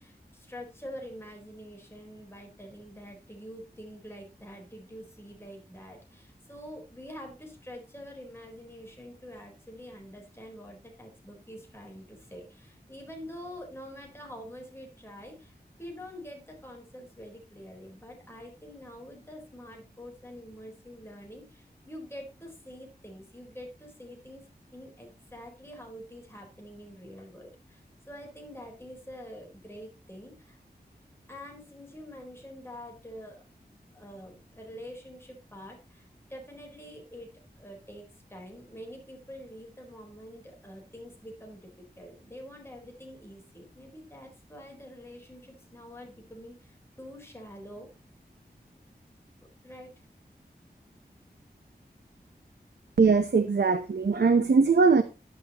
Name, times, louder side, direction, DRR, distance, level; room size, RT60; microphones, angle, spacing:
voice 1, 0.0-15.5 15.8-24.5 24.7-30.6 31.3-33.4 33.9-37.3 37.6-38.0 38.3-41.6 42.0-47.9 49.6-50.0, equal, 15° left, 4.2 m, -46 dB
voice 2, 53.0-55.0, right 4 dB, 85° right, 0.9 m, -21 dB
11.5 x 11.0 x 3.0 m
wide cardioid pair, 70°, 17 cm